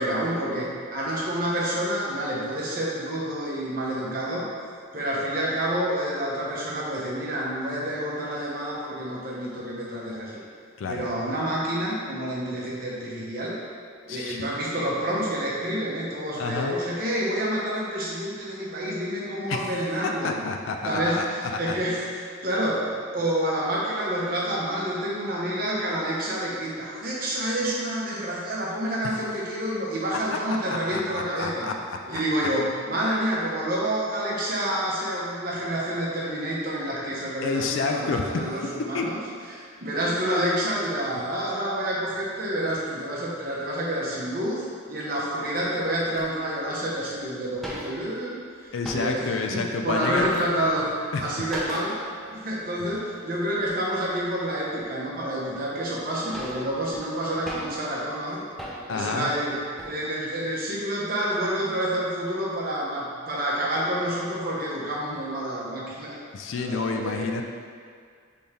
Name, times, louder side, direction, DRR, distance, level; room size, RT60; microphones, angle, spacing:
voice 1, 0.0-4.5 4.9-10.4 10.9-13.6 14.1-20.4 20.8-31.7 32.1-39.2 39.5-50.9 51.2-52.0 52.3-58.4 58.9-66.2 66.6-67.4, right 1 dB, 45° right, -5 dB, 0.9 m, -28 dB
voice 2, 14.1-14.4 16.3-16.7 19.5-19.7 20.2-21.8 30.7-31.7 32.1-32.2 37.4-38.4 38.9-39.1 48.7-50.3 51.1-51.2 58.9-59.3 66.3-67.4, left 4 dB, 75° left, 4 dB, 0.4 m, -29 dB
sound 1, 46.2-46.3 47.0-47.1 47.2-47.3 47.5-48.3 48.6-49.4 49.8-50.9 51.5-52.1 52.4-52.5 52.9-53.0 53.6-54.1 54.7-54.8 55.5-55.6 56.0-57.9 58.6-59.1 59.5-60.0, equal, ahead, 0.5 m, -38 dB
4.3 x 3.4 x 3.3 m, 2.1 s
head